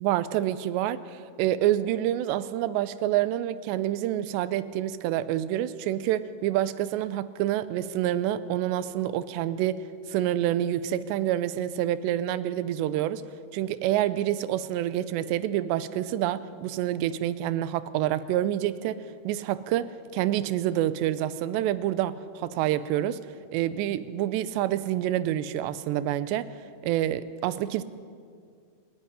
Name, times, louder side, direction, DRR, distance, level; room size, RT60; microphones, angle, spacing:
voice 1, 0.0-13.2 13.5-23.2 23.5-26.5 26.8-27.8, right 12 dB, 85° right, 15 dB, 2.8 m, -27 dB
26.0 x 10.5 x 9.9 m, 2.2 s
omnidirectional pair, 5.0 m